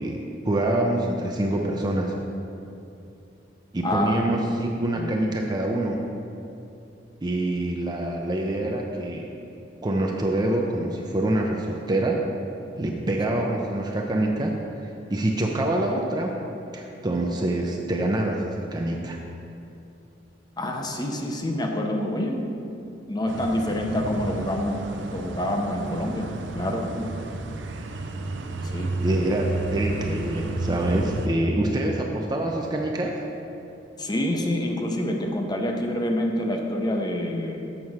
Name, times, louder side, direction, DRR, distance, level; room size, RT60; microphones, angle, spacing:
voice 1, 0.0-2.1 3.7-6.0 7.2-9.3 9.8-12.2 12.8-14.5 14.8-16.3 16.7-19.2 29.0-33.2, right 1 dB, 20° right, 0 dB, 0.5 m, -26 dB
voice 2, 3.8-4.3 5.0-5.1 13.3-13.5 20.6-22.5 23.1-24.8 25.1-27.1 28.6-28.9 34.0-37.7, left 1 dB, 20° left, 2 dB, 0.7 m, -27 dB
sound 1, 23.3-31.3, right 2 dB, 80° right, 0.5 m, -32 dB
7.3 x 4.6 x 6.3 m, 2.7 s
head